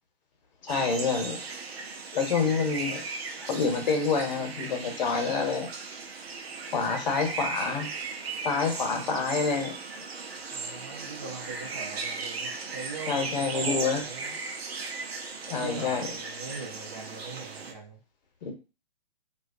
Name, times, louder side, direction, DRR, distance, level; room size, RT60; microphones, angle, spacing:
voice 1, 0.6-1.4 2.1-3.0 3.4-5.7 6.7-7.9 8.4-9.8 13.1-14.0 15.5-16.1 18.4-18.5, left 5 dB, 45° left, 2 dB, 0.8 m, -27 dB
sound 1, 0.7-17.7, right 4 dB, 90° right, 0.5 m, -37 dB
voice 2, 10.5-14.4 15.6-18.0, right 4 dB, 25° right, -1 dB, 0.4 m, -41 dB
2.2 x 2.2 x 2.5 m, 0.33 s
hypercardioid pair, 140°, 30 cm